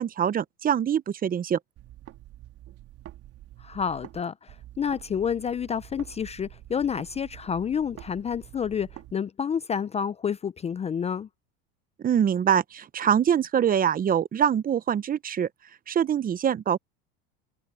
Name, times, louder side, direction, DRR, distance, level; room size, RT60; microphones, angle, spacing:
voice 1, 0.0-1.6 12.0-15.5 15.9-16.8, right 8 dB, 30° right, 0.9 m, -24 dB
sound 1, 1.8-4.2 4.5-9.1, right 14 dB, 50° right, 3.4 m, -47 dB
voice 2, 3.6-11.3, left 7 dB, 20° left, 0.5 m, -29 dB
supercardioid pair, 105°, 30 cm